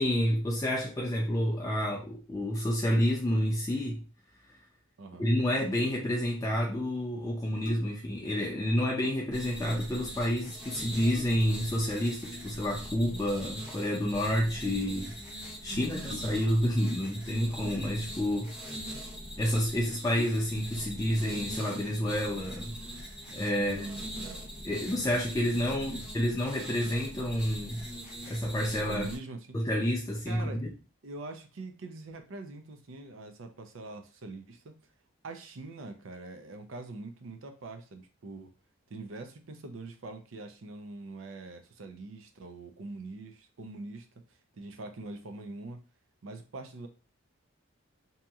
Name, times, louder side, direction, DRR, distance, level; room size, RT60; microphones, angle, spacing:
voice 1, 0.0-4.0 5.2-15.1 15.6-18.5 19.4-22.7 23.3-23.9 24.6-27.8 28.3-29.1 29.5-30.7, equal, 15° left, -1 dB, 0.3 m, -29 dB
voice 2, 5.0-5.3 15.7-16.3 23.6-24.4 25.7-26.0 28.7-29.6 30.3-30.7 31.0-34.7 35.2-38.5 38.9-44.1 44.5-45.8 46.2-46.9, right 3 dB, 70° right, 7 dB, 0.5 m, -43 dB
sound 1, 7.6-8.2 10.2-10.3 10.8-11.7 13.2-13.6 16.1-16.7 17.6-18.3 19.1-19.2 19.5-19.6 20.1-20.8 21.2-21.3, left 5 dB, 70° left, 0.8 m, -48 dB
sound 2, 9.3-29.2, equal, 5° right, 0.7 m, -42 dB
2.8 x 2.7 x 2.3 m, 0.32 s
head